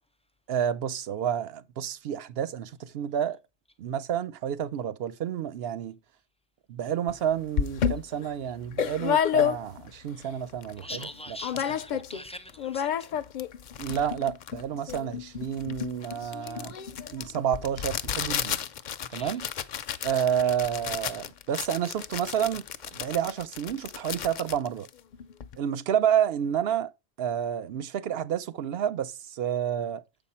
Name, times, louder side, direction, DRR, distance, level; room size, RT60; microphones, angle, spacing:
voice 1, 0.5-3.4 3.8-6.0 6.7-10.9 13.8-16.8 17.1-18.5 19.1-19.5 20.0-22.6 22.9-24.9 25.6-26.9 27.2-30.0, right 9 dB, 65° right, 0.8 m, -29 dB
sound 1, 7.1-7.2 7.6-9.9 10.4-10.5 10.6-11.1 11.4-12.2 12.5-25.6, left 8 dB, 55° left, 0.5 m, -31 dB
voice 2, 10.8-13.1 19.1-19.4 19.8-20.0, left 1 dB, 10° left, 0.4 m, -43 dB
7.4 x 5.3 x 4.2 m
omnidirectional pair, 1.1 m